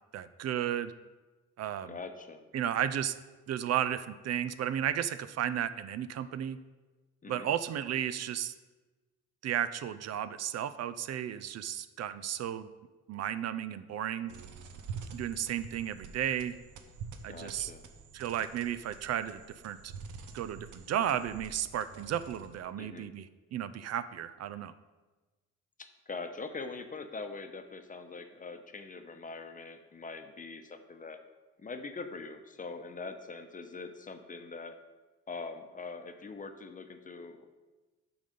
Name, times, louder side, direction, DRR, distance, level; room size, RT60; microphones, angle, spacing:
voice 1, 0.1-0.9 1.6-2.0 2.5-3.1 3.5-6.6 7.3-8.5 9.4-12.7 13.1-14.3 15.1-16.6 17.2-17.7 18.1-19.9 20.3-24.7, right 10 dB, 60° right, 13 dB, 0.5 m, -34 dB
voice 2, 1.9-2.5 7.2-7.5 17.3-17.9 22.7-23.1 25.8-31.2 31.6-34.8 35.3-37.5, left 4 dB, 25° left, 7 dB, 0.8 m, -43 dB
sound 1, 14.3-22.7, right 5 dB, 80° right, 0.9 m, -47 dB
8.7 x 4.0 x 6.7 m, 1.2 s
cardioid pair, 90°, 30 cm